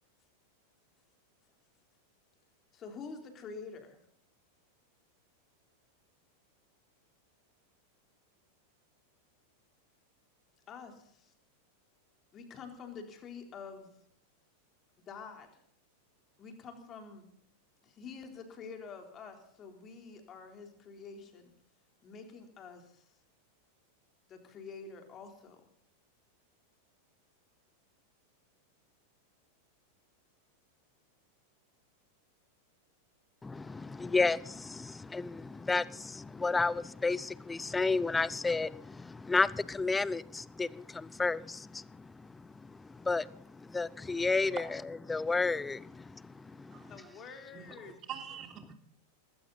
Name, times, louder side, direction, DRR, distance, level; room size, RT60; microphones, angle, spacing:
voice 1, 2.7-4.0 10.7-11.3 12.3-13.9 15.1-15.5 16.4-17.3 17.8-21.5 22.0-23.1 24.3-25.6 46.8-48.1, left 5 dB, 30° left, 3.7 m, -47 dB
voice 2, 33.4-46.9, left 3 dB, 10° left, 0.6 m, -32 dB
voice 3, 46.7-47.1 47.5-47.7 48.1-48.7, right 9 dB, 30° right, 3.3 m, -44 dB
20.0 x 16.5 x 4.1 m
figure-of-eight pair, 90°, 0 cm